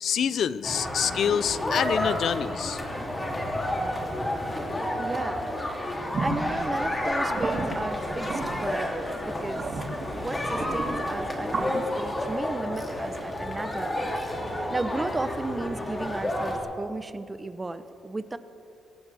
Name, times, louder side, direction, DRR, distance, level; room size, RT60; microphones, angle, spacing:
voice 1, 0.0-2.8, left 8 dB, 65° left, 15 dB, 0.5 m, -26 dB
sound 1, 0.6-16.6, left 1 dB, 20° left, 2.9 m, -30 dB
voice 2, 5.0-5.5 6.2-9.6 10.1-18.4, right 2 dB, 20° right, 12 dB, 0.8 m, -34 dB
sound 2, 6.1-11.7, right 3 dB, 45° right, 2.4 m, -34 dB
23.5 x 17.0 x 3.5 m, 2.7 s
cardioid pair, 90°, 0 cm